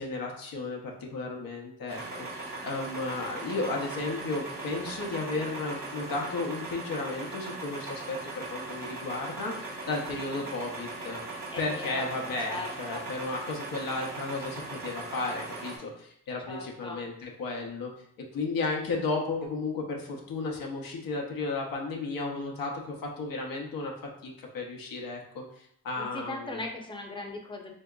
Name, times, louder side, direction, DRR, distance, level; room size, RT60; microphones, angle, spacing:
voice 1, 0.0-11.2 11.6-17.9 18.2-23.9 24.2-26.6, left 3 dB, 85° left, 0 dB, 0.7 m, -34 dB
sound 1, 1.9-15.8, right 2 dB, 70° right, 1.2 m, -39 dB
voice 2, 10.1-10.5 11.5-13.1 16.5-17.0 26.0-27.7, left 2 dB, 15° left, 2 dB, 0.6 m, -39 dB
3.6 x 2.8 x 2.3 m, 0.69 s
cardioid pair, 45°, 34 cm